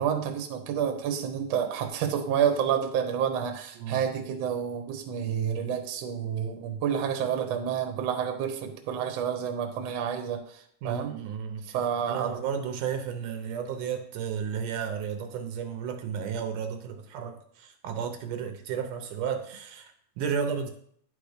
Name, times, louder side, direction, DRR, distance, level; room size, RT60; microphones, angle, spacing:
voice 1, 0.0-11.2 11.7-12.3, right 8 dB, 65° right, 5 dB, 1.9 m, -29 dB
voice 2, 10.8-11.6 12.0-20.7, right 7 dB, 80° right, 7 dB, 2.3 m, -33 dB
10.0 x 5.4 x 5.0 m, 0.62 s
omnidirectional pair, 3.7 m